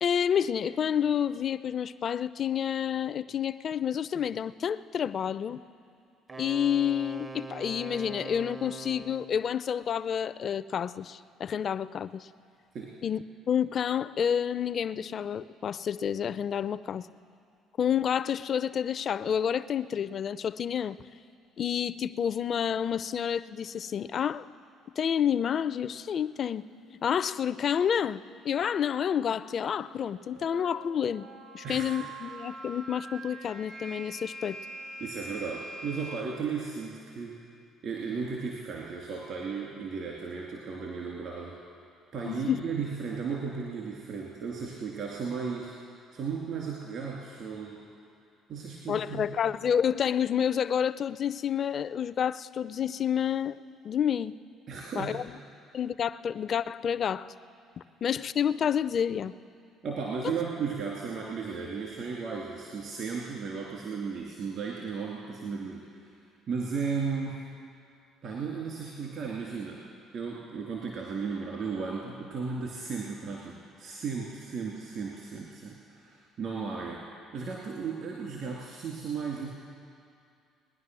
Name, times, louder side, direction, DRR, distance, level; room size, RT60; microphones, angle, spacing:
voice 1, 0.0-5.6 6.4-12.3 13.0-17.1 17.8-21.0 21.6-24.4 25.0-26.7 27.0-31.3 31.5-34.6 42.2-42.6 48.9-53.6 53.8-54.4 55.0-55.2 55.7-57.3 58.0-59.3, left 8 dB, 50° left, 15 dB, 0.4 m, -29 dB
Wind instrument woodwind instrument, 6.3-9.4, right 4 dB, 30° right, 0.6 m, -42 dB
sound 1, 26.6-36.2, right 1 dB, 80° right, 2.5 m, -45 dB
voice 2, 35.0-37.4 37.8-41.6 42.1-45.7 46.1-47.8 48.5-49.3 54.7-55.2 59.8-66.1 66.5-67.4 68.2-69.8 70.1-77.0 77.3-79.5, right 5 dB, 60° right, -3 dB, 2.5 m, -35 dB
20.0 x 10.0 x 6.2 m, 2.4 s
hypercardioid pair, 60°, 0 cm